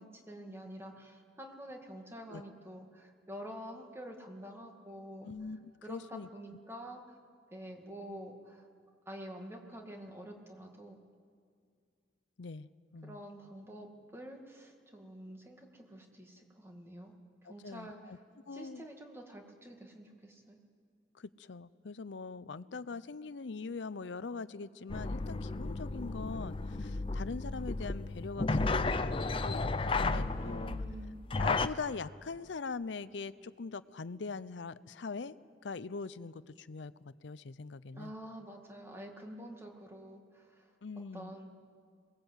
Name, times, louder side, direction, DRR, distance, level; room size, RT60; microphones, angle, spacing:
voice 1, 0.0-5.3 5.8-7.2 7.5-8.7 9.1-11.0 13.0-17.1 17.4-18.2 18.5-20.6 30.4-31.2 37.9-40.7 41.1-41.5, equal, 15° right, 2 dB, 2.1 m, -48 dB
voice 2, 5.2-6.3 12.4-13.2 17.4-18.2 18.5-18.8 21.1-30.7 31.4-35.4 35.6-38.1 40.8-41.3, left 4 dB, 80° left, 16 dB, 0.6 m, -42 dB
sound 1, 24.9-31.7, left 3 dB, 30° left, 0.5 m, -33 dB
22.0 x 19.0 x 8.1 m, 2.1 s
head